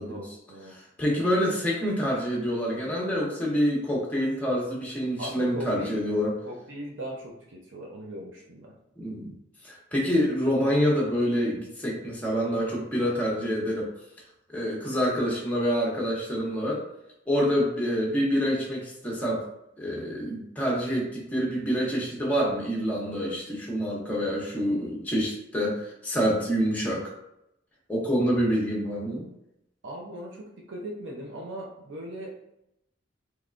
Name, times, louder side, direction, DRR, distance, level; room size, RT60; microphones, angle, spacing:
voice 1, 0.0-0.8 5.2-6.0 6.5-8.7 29.8-32.4, right 1 dB, 80° right, -2 dB, 0.6 m, -39 dB
voice 2, 0.7-6.3 9.0-9.3 9.6-13.9 14.5-16.8 17.3-19.4 19.8-27.0 27.9-29.3, equal, 10° left, -4 dB, 0.8 m, -27 dB
3.5 x 3.1 x 2.4 m, 0.82 s
head